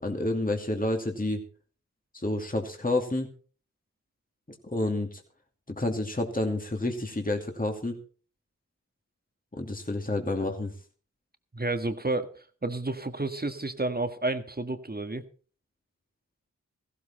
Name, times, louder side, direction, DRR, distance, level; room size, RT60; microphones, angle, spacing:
voice 1, 0.0-1.4 2.1-3.3 4.7-5.2 5.7-8.0 9.5-10.7, left 2 dB, 25° left, 3 dB, 2.6 m, -29 dB
voice 2, 11.5-15.2, right 2 dB, 30° right, 8 dB, 1.7 m, -31 dB
15.0 x 13.0 x 4.4 m, 0.40 s
cardioid pair, 40°, 33 cm